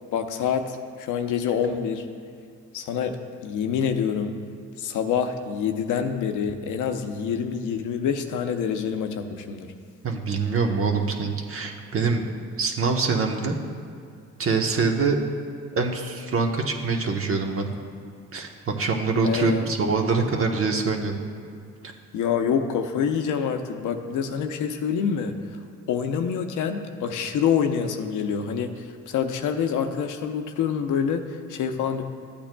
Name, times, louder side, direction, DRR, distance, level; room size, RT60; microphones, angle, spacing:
voice 1, 0.1-2.1 2.7-4.4 4.8-9.7 19.2-19.7 22.1-25.4 25.9-32.0, left 7 dB, 85° left, 6 dB, 0.7 m, -26 dB
voice 2, 10.0-12.2 12.6-13.6 14.4-15.2 15.7-17.8 18.3-21.2, right 4 dB, 45° right, 2 dB, 1.0 m, -24 dB
13.5 x 8.6 x 2.2 m, 2.3 s
cardioid pair, 90°, 30 cm